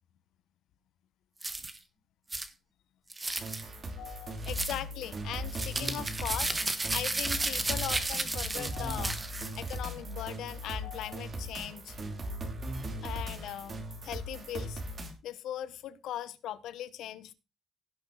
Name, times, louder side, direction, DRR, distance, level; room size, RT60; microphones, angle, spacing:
sound 1, 1.4-1.8 2.3-2.5 3.1-3.6 4.4-4.8 5.5-9.8, right 2 dB, 20° right, 1.5 m, -33 dB
sound 2, 3.4-15.1, equal, 45° right, 2.6 m, -38 dB
voice 1, 3.9-9.2 9.6-12.0 13.0-14.8 15.2-17.3, left 12 dB, 85° left, 15 dB, 0.9 m, -39 dB
16.5 x 5.8 x 3.9 m, 0.28 s
cardioid pair, 90°, 0 cm